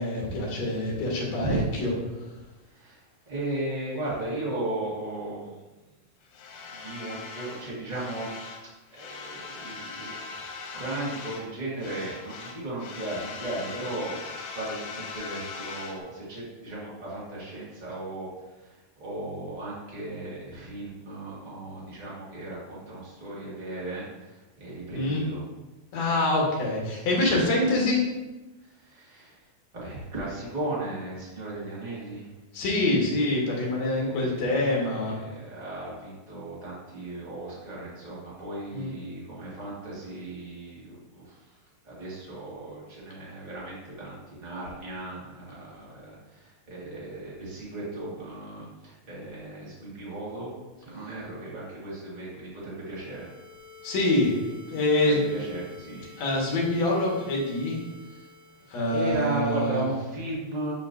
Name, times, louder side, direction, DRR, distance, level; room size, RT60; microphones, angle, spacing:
voice 1, 0.0-1.9 24.9-25.3 25.9-28.0 32.5-35.1 38.7-38.9 53.8-55.4 56.2-57.8 58.7-59.8, left 2 dB, 55° left, -3 dB, 2.3 m, -25 dB
voice 2, 2.7-5.6 6.6-8.3 8.9-10.1 10.7-25.4 28.6-29.4 29.7-32.3 33.8-41.5 41.8-53.3 55.0-56.1 58.9-60.7, right 1 dB, 30° right, -7 dB, 0.8 m, -36 dB
sound 1, 6.3-8.7 8.9-11.5 11.8-16.0, left 4 dB, 80° left, 2.5 m, -40 dB
sound 2, 52.8-59.0, left 4 dB, 75° right, 3.0 m, -50 dB
7.6 x 5.1 x 2.7 m, 1.1 s
omnidirectional pair, 4.2 m